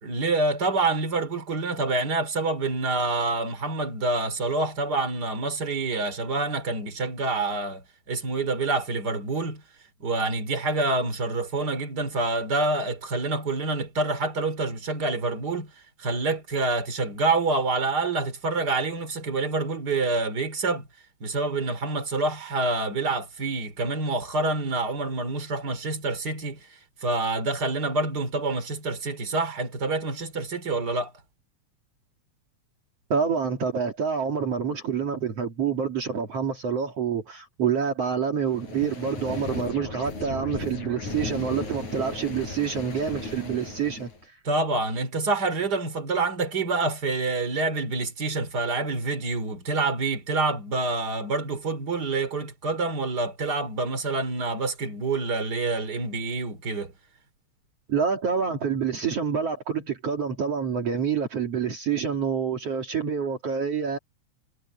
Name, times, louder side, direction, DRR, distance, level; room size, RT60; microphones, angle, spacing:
voice 1, 0.0-9.6 10.0-15.7 16.0-20.9 21.2-26.7 27.0-31.1 44.4-56.9, right 3 dB, 35° right, 4.0 m, -27 dB
voice 2, 33.1-44.3 57.9-64.0, right 6 dB, 55° right, 3.4 m, -27 dB
sound 1, 38.5-44.2, left 3 dB, 80° left, 9.0 m, -36 dB
omnidirectional pair, 3.3 m